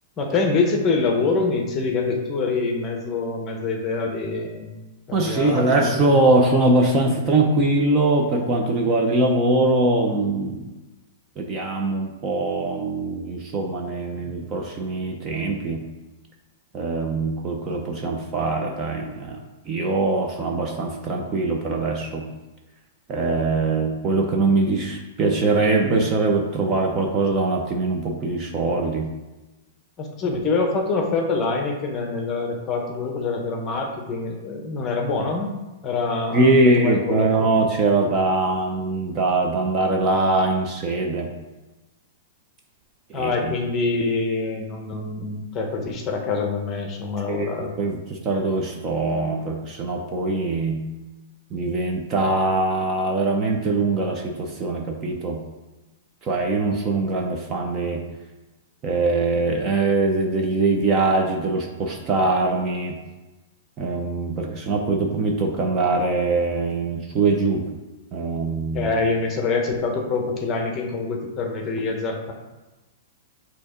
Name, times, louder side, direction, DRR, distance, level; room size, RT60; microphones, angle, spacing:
voice 1, 0.2-4.7 5.1-6.1 30.0-35.5 35.8-37.5 43.1-47.7 68.7-72.3, left 3 dB, 20° left, 2 dB, 0.8 m, -25 dB
voice 2, 5.1-10.7 11.4-15.8 16.7-19.4 19.7-22.3 23.1-29.1 36.3-41.3 43.1-43.6 47.3-50.8 51.5-55.4 56.2-58.0 58.8-63.0 63.8-67.6 68.1-68.9, right 2 dB, 20° right, 1 dB, 0.5 m, -22 dB
6.7 x 2.8 x 4.9 m, 1.1 s
supercardioid pair, 170°, 0 cm